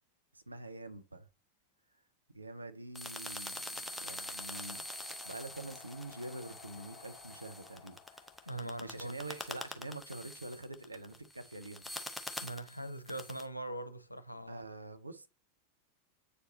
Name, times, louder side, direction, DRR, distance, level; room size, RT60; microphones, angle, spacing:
voice 1, 0.3-1.3 2.3-8.5 8.8-11.9 14.5-15.3, right 2 dB, 80° right, 0.7 m, -46 dB
sound 1, 2.9-13.4, left 1 dB, 5° left, 0.9 m, -45 dB
sound 2, 3.5-9.6, left 9 dB, 30° left, 2.2 m, -57 dB
voice 2, 8.5-9.2 12.4-14.6, right 1 dB, 85° left, 0.6 m, -41 dB
8.2 x 4.4 x 2.8 m
figure-of-eight pair, 90°, 0 cm